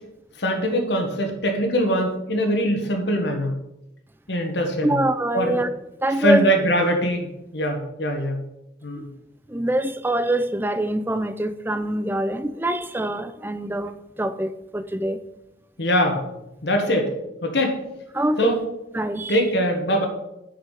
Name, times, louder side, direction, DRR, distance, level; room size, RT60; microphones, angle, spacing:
voice 1, 0.4-3.6 4.3-5.0 5.3-5.6 6.2-8.4 8.8-9.1 15.8-16.2 16.6-17.1 17.4-17.8 18.4-18.6 19.3-20.1, equal, 75° left, 2 dB, 1.5 m, -22 dB
voice 2, 4.8-5.7 6.0-6.5 9.0-9.1 9.5-15.2 18.1-18.6 18.9-19.4, right 1 dB, 10° right, 12 dB, 0.4 m, -24 dB
8.8 x 5.7 x 5.6 m, 0.88 s
head